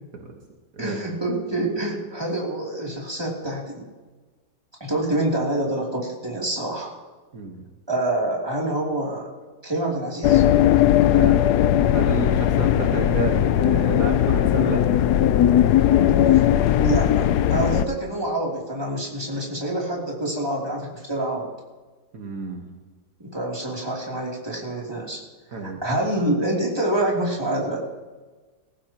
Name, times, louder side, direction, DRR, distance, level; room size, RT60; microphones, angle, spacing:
voice 1, 0.8-3.8 4.8-6.9 7.9-9.3 9.6-10.4 16.8-21.5 23.2-25.2 25.6-27.8, right 1 dB, 15° right, -3 dB, 3.0 m, -26 dB
sound 1, 10.2-17.9, left 11 dB, 85° left, 1.2 m, -18 dB
voice 2, 11.9-14.8 22.1-22.7 25.5-25.8, right 4 dB, 65° right, 1 dB, 1.8 m, -30 dB
19.5 x 15.5 x 3.0 m, 1.3 s
omnidirectional pair, 1.7 m